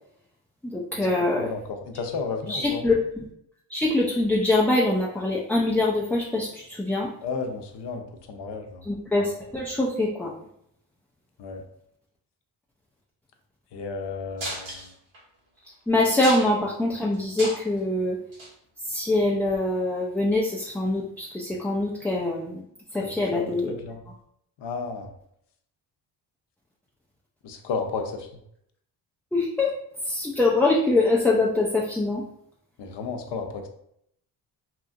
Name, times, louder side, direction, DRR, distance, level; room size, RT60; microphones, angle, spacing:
voice 1, 0.6-1.5 2.5-3.0 3.7-7.1 8.8-10.3 15.9-18.2 18.8-22.6 22.9-23.8 29.3-29.7 30.0-32.2, left 2 dB, 5° left, -4 dB, 0.3 m, -24 dB
voice 2, 1.4-2.8 7.2-8.8 11.4-11.6 13.7-14.9 23.0-24.0 24.6-25.1 27.4-28.3 32.8-33.7, left 4 dB, 60° left, 5 dB, 0.6 m, -33 dB
sound 1, 14.4-15.2 15.6-15.7 16.0-16.7 17.1-17.8 18.3-18.5 19.5-19.6, right 1 dB, 75° right, 1.4 m, -34 dB
2.9 x 2.4 x 2.4 m, 0.72 s
supercardioid pair, 60°, 47 cm